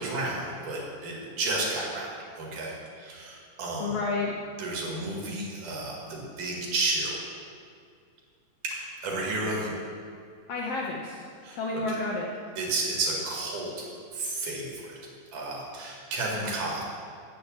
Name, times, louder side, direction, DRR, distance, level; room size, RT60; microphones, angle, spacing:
voice 1, 0.0-2.1 2.4-2.7 3.0-3.9 4.6-7.2 8.6-9.7 11.4-12.0 12.6-13.9 14.1-15.0 15.3-16.8, right 2 dB, 80° right, -2 dB, 3.4 m, -32 dB
voice 2, 3.8-4.4 10.5-11.3 11.5-12.3, left 3 dB, 70° left, -1 dB, 1.5 m, -30 dB
8.4 x 6.8 x 7.4 m, 2.3 s
omnidirectional pair, 3.6 m